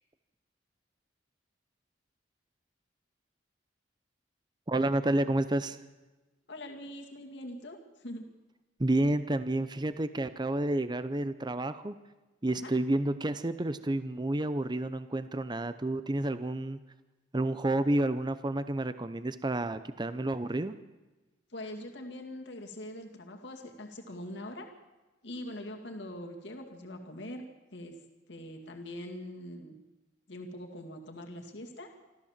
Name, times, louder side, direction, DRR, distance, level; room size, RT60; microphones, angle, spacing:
voice 1, 4.7-5.8 8.8-11.9 12.4-16.8 17.3-20.7, right 1 dB, 25° right, 12 dB, 0.7 m, -30 dB
voice 2, 6.5-8.2 12.5-12.7 21.5-24.7 25.2-27.4 27.7-27.9 28.3-29.7 30.3-31.9, left 1 dB, 65° left, 3 dB, 2.3 m, -43 dB
25.5 x 14.0 x 7.4 m, 1.2 s
head